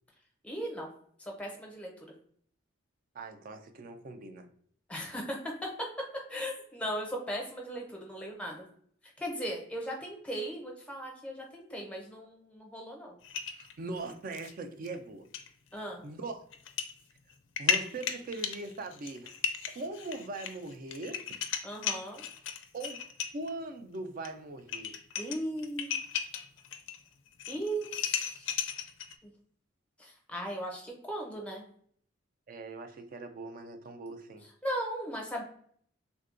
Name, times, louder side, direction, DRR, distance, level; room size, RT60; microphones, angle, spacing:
voice 1, 0.4-0.9 1.2-1.9 4.9-5.9 6.3-8.6 9.2-13.1 15.7-16.0 21.6-22.2 25.2-26.0 27.5-28.6 29.2-29.3 30.0-31.6 34.6-35.4, equal, 5° left, 0 dB, 0.6 m, -37 dB
voice 2, 3.1-4.5 13.5-15.3 16.0-16.4 17.6-19.4 19.7-21.2 22.7-23.0 23.3-25.0 32.5-34.4, right 2 dB, 45° right, 7 dB, 0.3 m, -40 dB
sound 1, 13.2-14.5 14.8-14.9 15.3-15.5 16.5-16.9 17.3-23.5 24.2-24.3 24.6-27.0 27.3-29.1, left 8 dB, 70° left, 0.4 m, -35 dB
3.4 x 2.2 x 2.4 m, 0.62 s
head